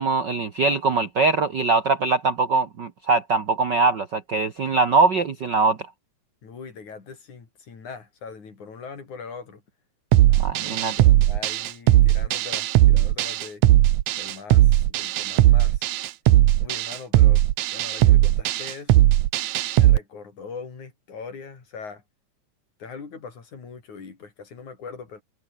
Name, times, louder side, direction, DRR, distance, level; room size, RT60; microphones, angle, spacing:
voice 1, 0.0-5.8 10.4-10.9, right 4 dB, 50° right, 1.4 m, -22 dB
voice 2, 6.4-9.6 10.3-13.6 14.1-15.9 16.6-17.4 17.7-19.1 19.8-22.0 22.8-25.2, left 5 dB, 65° left, 5.7 m, -41 dB
sound 1, 10.1-20.0, right 14 dB, 75° right, 2.2 m, -18 dB
omnidirectional pair, 3.7 m